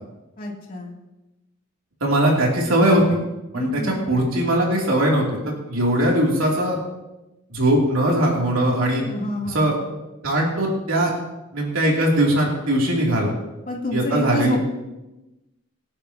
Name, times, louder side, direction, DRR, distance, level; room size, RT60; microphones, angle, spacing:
voice 1, 0.4-0.9 3.5-4.1 9.0-9.7 13.7-14.6, left 1 dB, 40° left, -2 dB, 2.9 m, -28 dB
voice 2, 2.0-3.2 3.5-3.7 4.1-6.8 7.5-9.0 9.5-9.8 10.2-11.1 11.5-13.3 13.9-14.6, right 1 dB, 85° right, -3 dB, 3.0 m, -20 dB
25.0 x 10.0 x 3.0 m, 1.0 s
head